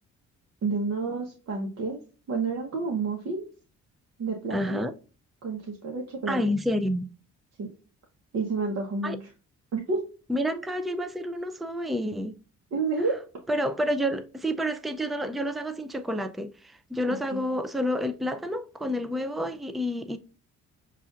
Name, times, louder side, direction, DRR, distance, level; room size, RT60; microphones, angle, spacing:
voice 1, 0.6-2.0 2.3-3.5 4.2-4.9 5.4-6.4 7.6-7.7 8.3-9.2 9.7-10.0 12.7-13.2 17.3-17.4, right 4 dB, 60° right, 1.1 m, -29 dB
voice 2, 4.5-4.9 6.3-7.0 9.0-9.2 10.3-12.3 13.5-20.2, equal, ahead, 0.4 m, -29 dB
6.9 x 2.5 x 2.4 m
cardioid pair, 90°, 30 cm